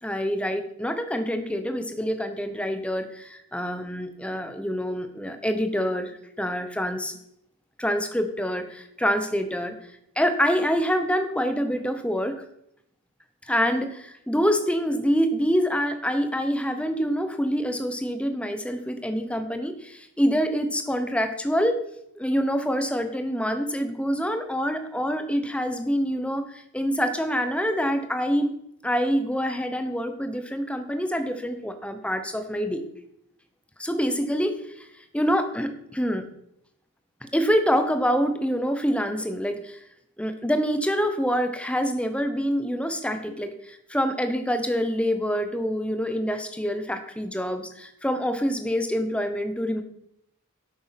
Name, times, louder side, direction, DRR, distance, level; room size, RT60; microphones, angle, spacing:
voice 1, 0.0-7.2 7.8-9.8 10.2-12.4 13.5-21.8 22.1-28.5 28.8-32.8 33.8-34.9 35.1-36.3 37.2-39.8 40.2-49.8, equal, 5° left, 8 dB, 1.1 m, -26 dB
11.0 x 8.7 x 5.9 m, 0.76 s
head